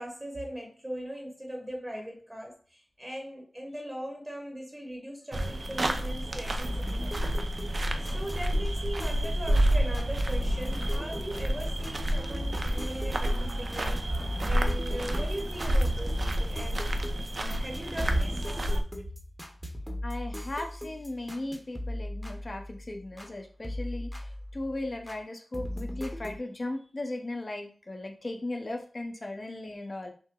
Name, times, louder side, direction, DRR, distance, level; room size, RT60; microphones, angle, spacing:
voice 1, 0.0-7.2 7.9-16.9 17.4-18.7, right 1 dB, 15° right, 1 dB, 1.1 m, -38 dB
sound 1, 5.3-18.8, right 1 dB, 50° right, 0.6 m, -29 dB
sound 2, 6.6-23.3 23.6-25.2 25.5-26.4, left 1 dB, 5° left, 1.0 m, -38 dB
voice 2, 20.0-30.1, left 2 dB, 40° left, 3 dB, 0.9 m, -37 dB
6.1 x 2.1 x 3.8 m, 0.41 s
wide cardioid pair, 75°, 0 cm